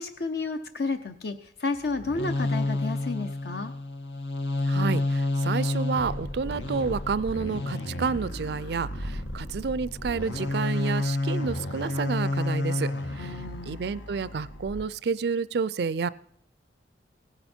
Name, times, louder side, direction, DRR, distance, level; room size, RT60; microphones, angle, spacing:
voice 1, 0.0-3.7 13.2-13.8, left 3 dB, 60° left, 8 dB, 0.7 m, -31 dB
sound 1, 1.8-14.9, left 2 dB, 85° left, 1.4 m, -30 dB
voice 2, 4.6-13.3 13.7-16.1, right 5 dB, 60° right, 19 dB, 0.4 m, -30 dB
17.0 x 10.0 x 4.4 m, 0.70 s
head